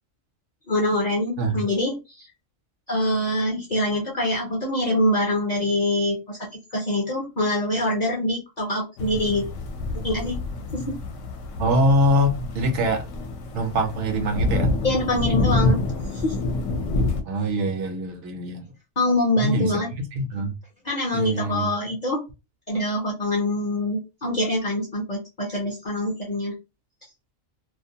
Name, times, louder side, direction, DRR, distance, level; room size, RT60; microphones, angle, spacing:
voice 1, 0.7-2.3 2.9-9.4 10.0-10.4 10.7-11.0 14.8-15.9 16.1-16.4 19.0-19.9 20.8-22.2 22.7-26.6, left 1 dB, 45° left, 0.6 m, -24 dB
sound 1, 9.0-17.2, left 2 dB, 75° left, 0.9 m, -27 dB
voice 2, 11.6-13.1 13.5-14.7 17.2-18.6 19.4-20.5 21.1-21.7, equal, 70° right, 0.8 m, -23 dB
2.4 x 2.1 x 2.6 m
omnidirectional pair, 1.3 m